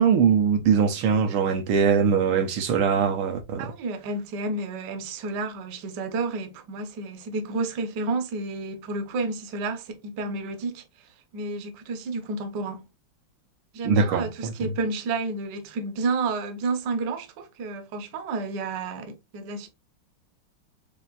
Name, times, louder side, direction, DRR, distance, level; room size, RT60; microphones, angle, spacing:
voice 1, 0.0-3.7 13.8-14.7, right 6 dB, 80° right, 1.5 m, -22 dB
voice 2, 3.6-10.8 11.3-12.9 13.7-19.7, right 3 dB, 60° right, 1.2 m, -31 dB
6.9 x 2.5 x 2.3 m
omnidirectional pair, 2.4 m